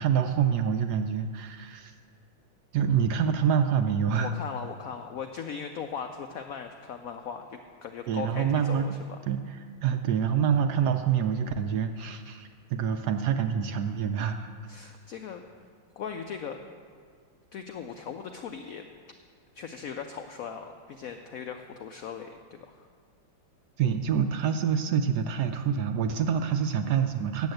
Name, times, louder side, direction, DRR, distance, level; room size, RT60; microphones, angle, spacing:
voice 1, 0.0-1.9 2.7-4.3 8.1-8.9 9.2-9.4 9.8-14.5 23.8-27.5, right 7 dB, 75° right, 7 dB, 1.0 m, -26 dB
voice 2, 4.1-9.2 14.7-15.4 16.0-16.6 17.5-18.9 19.5-22.9, left 7 dB, 85° left, 5 dB, 0.7 m, -39 dB
9.5 x 7.2 x 7.8 m, 2.1 s
omnidirectional pair, 2.1 m